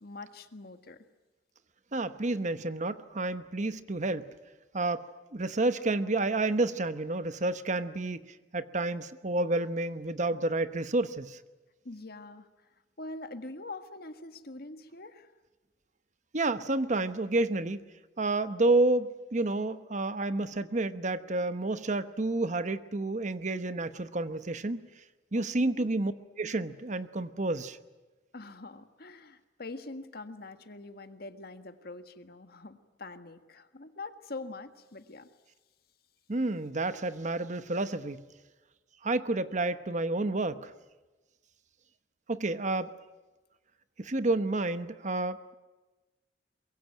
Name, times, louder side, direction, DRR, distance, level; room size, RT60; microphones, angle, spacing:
voice 1, 0.0-1.0 11.8-12.5 13.0-15.3 25.3-25.9 28.3-35.3, left 2 dB, 60° left, 8 dB, 1.7 m, -44 dB
voice 2, 1.9-4.3 4.7-5.0 5.3-8.2 8.5-11.4 16.3-17.8 18.2-24.8 25.3-26.1 26.4-27.8 36.3-38.2 39.0-40.7 42.3-42.9 44.0-45.5, right 2 dB, 45° right, 12 dB, 1.0 m, -30 dB
23.5 x 22.5 x 9.0 m, 1.2 s
head